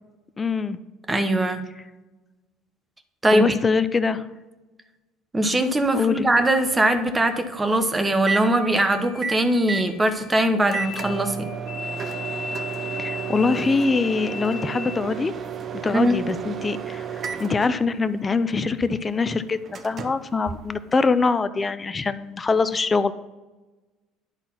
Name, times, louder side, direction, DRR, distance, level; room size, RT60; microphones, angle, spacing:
voice 1, 0.4-0.8 3.3-4.2 5.9-6.3 13.0-15.3 15.8-19.6 19.8-23.1, left 4 dB, 25° left, 13 dB, 0.5 m, -23 dB
voice 2, 1.1-1.6 3.2-3.6 5.3-11.5 15.9-16.2, right 1 dB, 15° right, 8 dB, 1.0 m, -21 dB
Microwave oven, 5.6-21.3, right 7 dB, 40° right, 0.7 m, -34 dB
sound 1, 8.3-15.0, left 5 dB, 60° left, 1.3 m, -37 dB
10.5 x 4.0 x 5.7 m, 1.1 s
supercardioid pair, 100°, 0 cm